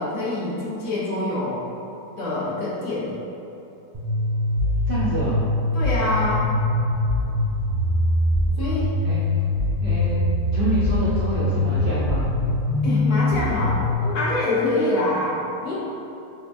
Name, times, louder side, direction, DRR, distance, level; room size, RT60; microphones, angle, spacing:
voice 1, 0.0-1.6 2.2-3.2 5.7-6.5 8.6-8.9 12.8-15.8, left 2 dB, 70° left, -7 dB, 1.3 m, -25 dB
sound 1, 3.9-13.9, left 1 dB, 20° right, 0.5 m, -23 dB
voice 2, 4.9-5.4 9.0-9.2 9.8-10.2 10.5-12.3, right 1 dB, 70° right, -9 dB, 0.5 m, -26 dB
5.7 x 2.2 x 2.6 m, 2.9 s
omnidirectional pair, 1.7 m